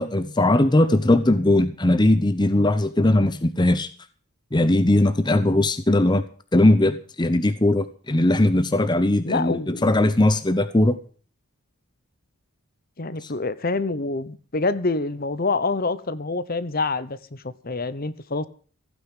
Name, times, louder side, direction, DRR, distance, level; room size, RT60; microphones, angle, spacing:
voice 1, 0.0-3.9 4.5-6.2 6.5-11.0 13.2-13.3, left 1 dB, 20° left, 0.8 m, -19 dB
voice 2, 9.2-9.9 13.0-18.5, left 3 dB, 40° left, 0.9 m, -26 dB
15.5 x 9.5 x 7.4 m
head